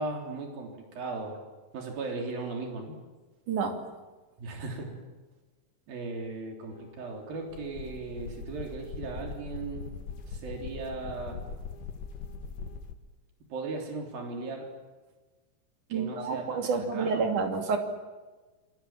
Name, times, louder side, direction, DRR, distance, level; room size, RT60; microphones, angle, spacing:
voice 1, 0.0-1.4 1.7-3.0 4.4-5.0 5.9-9.9 10.3-11.4 13.5-14.7 15.9-17.2, right 3 dB, 85° right, 2 dB, 5.3 m, -37 dB
sound 1, 6.7-12.9, left 5 dB, 70° left, 3.6 m, -41 dB
voice 2, 15.9-17.8, right 5 dB, 60° right, 4 dB, 4.3 m, -29 dB
28.0 x 25.5 x 7.4 m, 1.3 s
omnidirectional pair, 4.0 m